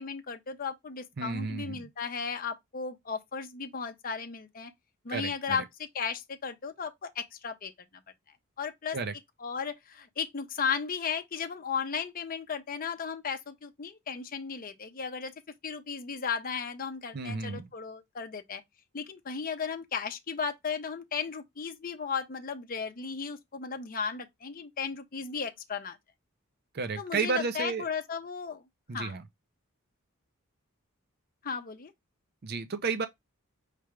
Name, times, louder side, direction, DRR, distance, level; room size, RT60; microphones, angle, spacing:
voice 1, 0.0-4.7 5.0-5.6 5.9-7.7 8.6-9.0 9.4-15.3 15.6-18.6 18.9-26.0 27.0-28.6 28.9-29.2 31.4-31.9, left 6 dB, 40° left, 0.6 m, -35 dB
voice 2, 1.2-1.8 5.1-5.6 8.9-9.1 17.1-17.7 26.7-27.9 28.9-29.2 32.4-33.1, right 4 dB, 45° right, 0.6 m, -32 dB
4.8 x 3.3 x 3.2 m
head